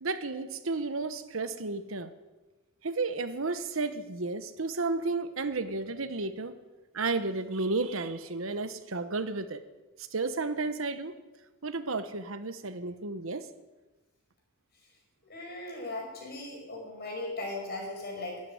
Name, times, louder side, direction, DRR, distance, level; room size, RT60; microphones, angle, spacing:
voice 1, 0.0-2.1 2.8-6.5 6.9-9.6 10.1-11.1 11.6-13.5, right 3 dB, 70° right, 11 dB, 1.1 m, -32 dB
voice 2, 15.2-18.4, left 2 dB, 50° left, 0 dB, 5.4 m, -38 dB
12.0 x 12.0 x 9.7 m, 1.1 s
head